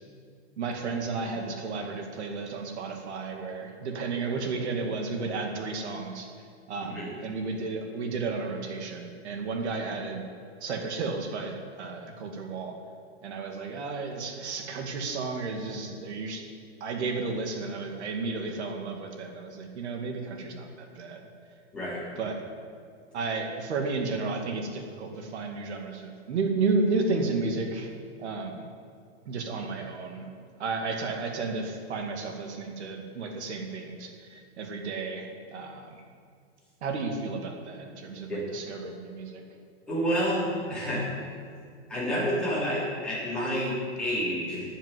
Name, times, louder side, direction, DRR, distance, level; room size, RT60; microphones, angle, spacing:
voice 1, 0.6-6.3 6.7-10.3 10.6-12.7 13.2-16.4 16.8-21.2 22.2-22.4 23.1-27.9 28.2-28.7 29.3-30.3 30.6-35.3 35.5-36.0 36.8-39.4, right 4 dB, 70° right, 2 dB, 2.3 m, -32 dB
voice 2, 39.9-41.1 41.9-44.6, equal, 5° left, -9 dB, 3.4 m, -29 dB
13.0 x 7.3 x 9.6 m, 2.2 s
supercardioid pair, 175°, 35 cm